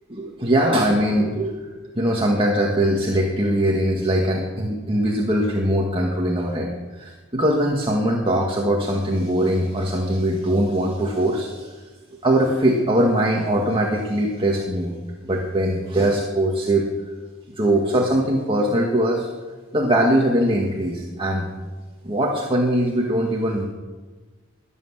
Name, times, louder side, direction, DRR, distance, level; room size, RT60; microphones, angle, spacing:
voice 1, 0.1-11.8 12.2-16.9 17.6-19.3 19.7-21.5 22.0-23.7, right 1 dB, 25° right, -1 dB, 1.8 m, -21 dB
21.5 x 8.8 x 7.4 m, 1.3 s
head